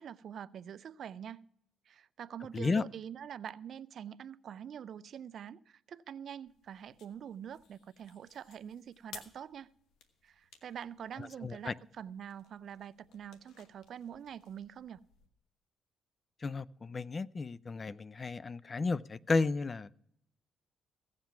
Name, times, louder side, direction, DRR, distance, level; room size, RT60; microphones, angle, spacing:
voice 1, 0.0-1.5 1.9-9.7 10.2-15.0, right 8 dB, 60° right, 0.4 m, -45 dB
sound 1, 6.4-15.3, left 6 dB, 85° left, 1.3 m, -58 dB
voice 2, 11.4-11.7 16.4-20.0, left 3 dB, 35° left, 0.4 m, -33 dB
16.0 x 7.5 x 5.8 m
cardioid pair, 90°, 0 cm